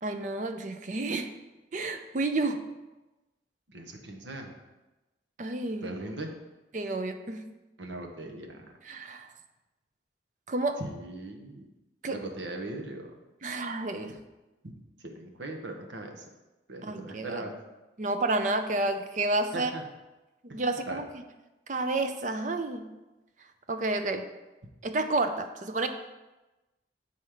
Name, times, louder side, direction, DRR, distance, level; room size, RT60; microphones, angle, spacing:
voice 1, 0.0-1.3 1.7-2.6 5.4-5.9 6.7-7.5 8.9-9.3 10.5-10.8 12.0-12.2 13.4-14.1 16.8-17.4 18.0-19.7 20.5-21.1 21.7-22.9 23.7-24.3 24.8-25.9, right 2 dB, 45° right, 7 dB, 0.5 m, -30 dB
voice 2, 3.7-4.5 5.8-6.3 7.8-8.7 10.8-11.7 12.1-13.1 15.0-16.3 16.7-17.5 19.5-19.8 20.9-21.0, right 2 dB, 85° right, 3 dB, 1.0 m, -39 dB
7.5 x 4.2 x 4.9 m, 1.1 s
head